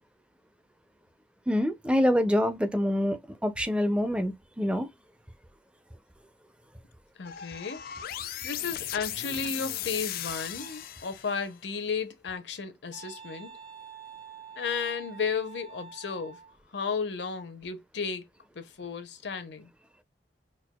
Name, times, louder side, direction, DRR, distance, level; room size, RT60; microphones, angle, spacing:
voice 1, 1.5-4.9, equal, 5° right, 0.4 m, -26 dB
voice 2, 7.2-7.8 8.4-13.5 14.6-16.4 16.7-18.3 18.5-19.7, left 5 dB, 75° left, 0.7 m, -33 dB
sound 1, 7.2-11.5, left 11 dB, 55° left, 0.3 m, -37 dB
Wind instrument woodwind instrument, 12.9-16.6, right 6 dB, 85° right, 1.5 m, -47 dB
4.4 x 2.3 x 2.2 m
head